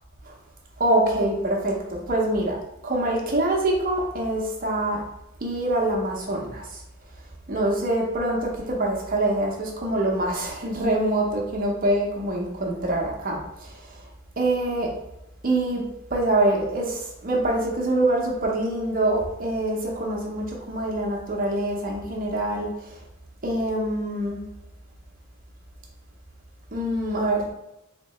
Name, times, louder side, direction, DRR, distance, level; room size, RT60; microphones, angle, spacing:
voice 1, 0.8-2.6 2.8-5.0 5.4-6.8 7.5-14.0 14.4-14.9 15.4-15.8 16.1-23.0 23.4-24.4 26.7-27.5, right 1 dB, 40° right, -1 dB, 0.8 m, -25 dB
3.6 x 3.3 x 3.2 m, 0.90 s
head